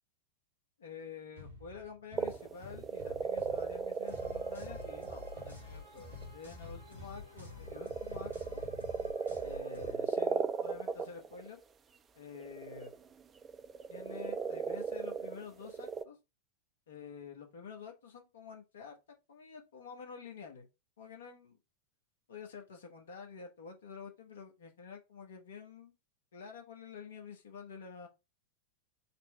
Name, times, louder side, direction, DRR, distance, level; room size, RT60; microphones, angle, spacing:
voice 1, 0.8-8.6 9.4-11.6 12.2-13.0 13.9-16.2 16.9-19.0 19.3-20.7 21.0-21.6 22.3-25.9 26.3-28.1, left 6 dB, 65° left, 0.9 m, -49 dB
sound 1, 1.4-9.4, left 2 dB, 70° right, 0.9 m, -52 dB
sound 2, 2.2-5.5 6.0-6.2 7.7-11.5 12.3-16.0, right 6 dB, 20° right, 0.4 m, -36 dB
sound 3, 4.0-9.9, left 4 dB, 85° left, 1.5 m, -50 dB
4.3 x 2.1 x 4.5 m
figure-of-eight pair, 90°, 0 cm